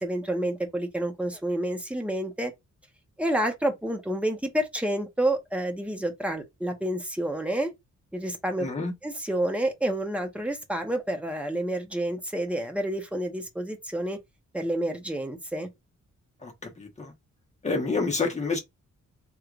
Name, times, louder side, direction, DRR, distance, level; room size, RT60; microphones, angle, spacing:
voice 1, 0.0-2.5 3.2-7.7 8.1-8.7 9.0-14.2 14.5-15.7, right 1 dB, 5° right, 0.9 m, -29 dB
voice 2, 8.6-8.9 16.4-17.1 17.6-18.6, left 3 dB, 25° left, 1.2 m, -28 dB
3.2 x 3.0 x 2.4 m
wide cardioid pair, 140°, 30 cm